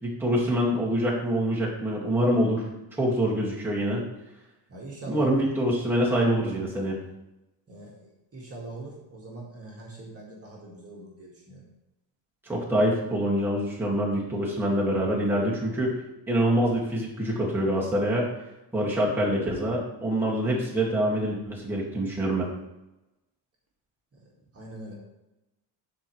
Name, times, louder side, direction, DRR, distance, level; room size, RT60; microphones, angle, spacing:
voice 1, 0.0-2.7 2.9-4.0 5.1-7.0 12.4-15.9 16.3-18.3 18.7-22.5, equal, 5° right, -5 dB, 2.1 m, -25 dB
voice 2, 4.7-5.4 7.7-11.6 24.2-24.9, right 2 dB, 35° right, -3 dB, 2.0 m, -43 dB
11.5 x 4.7 x 3.2 m, 0.96 s
cardioid pair, 105°, 43 cm